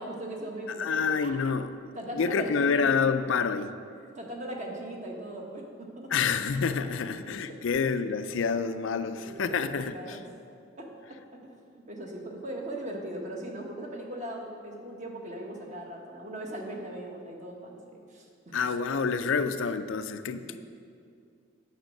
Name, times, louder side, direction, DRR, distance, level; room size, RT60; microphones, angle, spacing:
voice 1, 0.0-1.4 1.9-3.1 4.1-6.1 7.2-7.6 9.1-10.2 10.8-11.2 11.4-18.5 20.3-20.6, right 1 dB, 35° right, 0 dB, 1.3 m, -39 dB
voice 2, 0.8-1.7 2.1-3.8 6.1-10.2 18.5-20.6, left 5 dB, 75° left, 10 dB, 0.4 m, -28 dB
8.9 x 6.2 x 6.4 m, 2.3 s
head